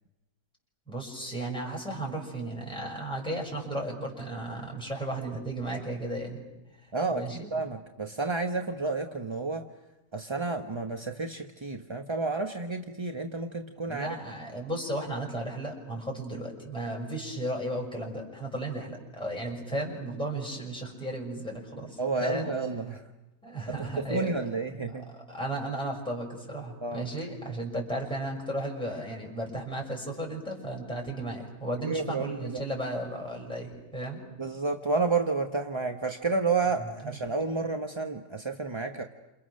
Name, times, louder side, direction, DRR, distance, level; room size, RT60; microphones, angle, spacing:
voice 1, 0.9-6.4 7.1-7.5 13.9-22.5 23.4-24.3 25.3-34.2, right 1 dB, 5° left, -2 dB, 6.2 m, -34 dB
voice 2, 6.9-9.7 10.1-14.2 22.0-23.1 23.7-25.1 26.8-27.1 31.8-32.6 34.4-39.0, right 4 dB, 25° right, 4 dB, 0.7 m, -31 dB
29.5 x 28.0 x 6.4 m, 0.99 s
omnidirectional pair, 1.8 m